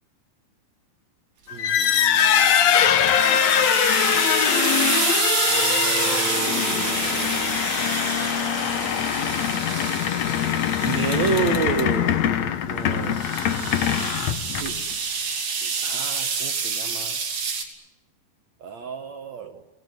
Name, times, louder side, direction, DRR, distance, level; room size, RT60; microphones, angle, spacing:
sound 1, 1.5-14.9, left 9 dB, 70° left, 1.6 m, -22 dB
voice 1, 1.5-2.8 5.5-7.6 10.8-12.2 12.7-13.2 14.6-14.7 15.6-17.2 18.6-19.6, right 6 dB, 65° right, 5 dB, 1.8 m, -31 dB
sound 2, 2.2-11.8 12.9-17.6, right 5 dB, 50° right, 4.2 m, -28 dB
27.5 x 18.5 x 9.5 m, 1.0 s
omnidirectional pair, 4.7 m